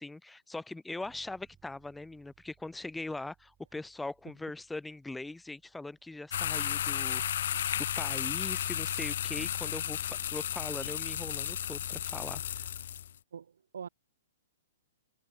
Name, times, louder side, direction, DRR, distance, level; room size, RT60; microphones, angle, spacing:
voice 1, 0.0-12.6, left 2 dB, 5° left, 0.7 m, -41 dB
Bass guitar, 1.0-10.8, right 10 dB, 20° right, 7.0 m, -70 dB
sound 1, 6.3-13.1, left 10 dB, 65° left, 0.5 m, -33 dB
voice 2, 13.3-13.9, right 7 dB, 80° right, 1.0 m, -44 dB
hypercardioid pair, 140°, 0 cm